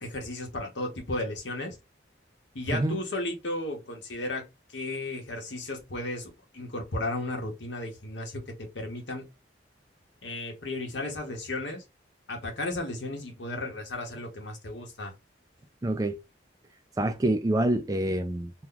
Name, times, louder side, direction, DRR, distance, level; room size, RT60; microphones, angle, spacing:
voice 1, 0.0-1.8 2.5-9.2 10.2-11.8 12.3-15.1, left 2 dB, 70° left, 1.2 m, -34 dB
voice 2, 15.8-16.2 17.0-18.5, right 1 dB, 20° right, 0.3 m, -26 dB
3.0 x 2.2 x 3.7 m
head